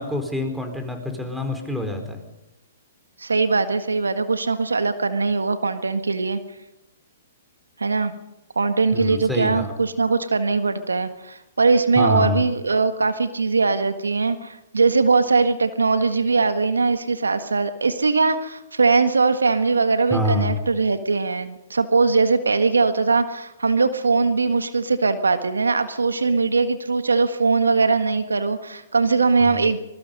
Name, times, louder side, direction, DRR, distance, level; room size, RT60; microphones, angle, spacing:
voice 1, 0.0-2.2 8.9-9.7 12.0-12.4 20.1-20.5 29.4-29.6, left 1 dB, 5° right, 5 dB, 4.3 m, -26 dB
voice 2, 3.2-6.4 7.8-8.1 8.5-29.8, right 4 dB, 90° right, 9 dB, 1.6 m, -21 dB
25.0 x 22.0 x 5.4 m, 0.92 s
hypercardioid pair, 125°, 0 cm